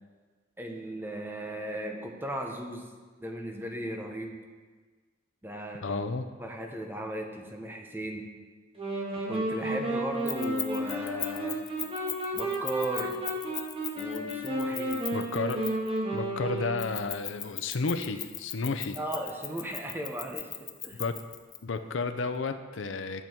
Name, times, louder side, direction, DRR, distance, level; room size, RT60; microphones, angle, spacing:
voice 1, 0.6-2.9 3.2-4.4 5.4-6.0 6.4-8.3 9.3-11.6 12.3-13.2 14.0-15.0 19.0-21.0, right 1 dB, 10° right, 2 dB, 1.0 m, -36 dB
voice 2, 5.8-6.3 15.1-15.6 16.1-19.0 21.0-21.2 21.6-23.3, left 4 dB, 75° left, 8 dB, 0.6 m, -32 dB
sound 1, 8.8-17.2, right 1 dB, 30° right, 1.8 m, -32 dB
Keys jangling, 10.3-16.0 16.8-21.6, left 9 dB, 20° left, 0.5 m, -37 dB
11.0 x 7.1 x 4.6 m, 1.4 s
head